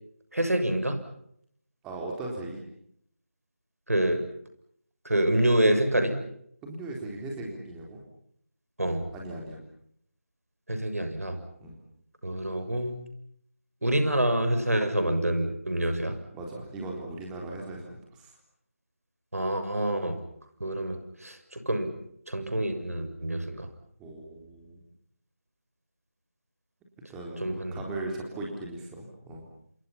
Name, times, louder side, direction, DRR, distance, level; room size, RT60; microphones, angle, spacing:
voice 1, 0.3-1.0 3.9-4.2 5.1-6.2 8.8-9.0 10.7-11.4 12.2-13.0 13.8-16.2 19.3-20.2 20.6-21.9 22.3-23.7 27.4-27.8, right 1 dB, 70° right, 7 dB, 6.9 m, -27 dB
voice 2, 1.8-2.6 6.6-8.0 9.1-9.6 11.6-11.8 16.3-18.4 24.0-24.8 27.1-29.5, right 2 dB, 5° right, -1 dB, 3.8 m, -38 dB
29.0 x 28.0 x 5.8 m, 0.70 s
figure-of-eight pair, 160°, 8 cm